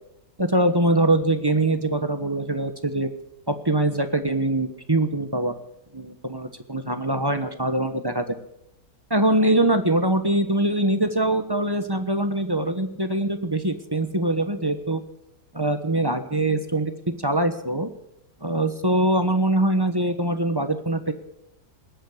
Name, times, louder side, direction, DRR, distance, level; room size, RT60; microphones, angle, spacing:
voice 1, 0.4-3.1 3.5-5.5 5.9-8.4 9.1-15.0 15.5-16.9 17.2-17.9 18.4-21.1, right 1 dB, 15° right, 9 dB, 0.9 m, -23 dB
19.5 x 8.7 x 8.3 m, 0.80 s
omnidirectional pair, 1.9 m